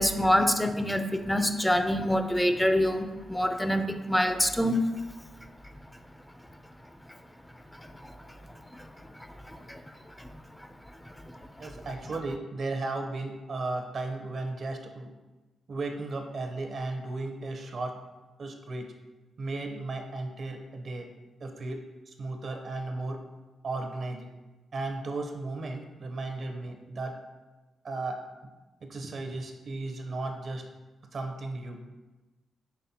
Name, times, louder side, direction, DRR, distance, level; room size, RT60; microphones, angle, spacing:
voice 1, 0.0-4.8 7.8-8.1 8.7-8.8 9.5-9.8 10.2-10.3, equal, 5° left, 7 dB, 0.4 m, -26 dB
voice 2, 11.6-15.1 15.7-17.9 18.4-18.8 19.4-21.1 21.4-21.8 22.1-23.2 23.6-24.3 24.7-27.1 27.8-28.2 28.9-30.6 31.1-31.8, right 2 dB, 60° right, 4 dB, 0.6 m, -35 dB
5.7 x 3.3 x 2.8 m, 1.2 s
cardioid pair, 65°, 0 cm